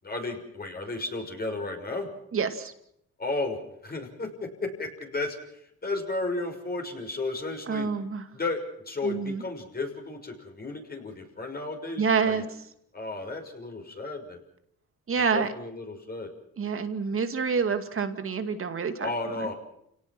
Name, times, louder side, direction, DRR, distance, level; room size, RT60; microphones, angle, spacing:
voice 1, 0.0-2.1 3.2-7.9 8.3-12.4 12.9-14.4 15.2-16.3 19.0-19.5, left 2 dB, 30° left, 3 dB, 6.4 m, -33 dB
voice 2, 2.3-2.7 7.7-8.2 9.0-9.4 12.0-12.4 15.1-15.5 16.6-19.1, right 5 dB, 45° right, 8 dB, 2.4 m, -27 dB
29.5 x 18.0 x 6.2 m, 0.74 s
cardioid pair, 90°, 30 cm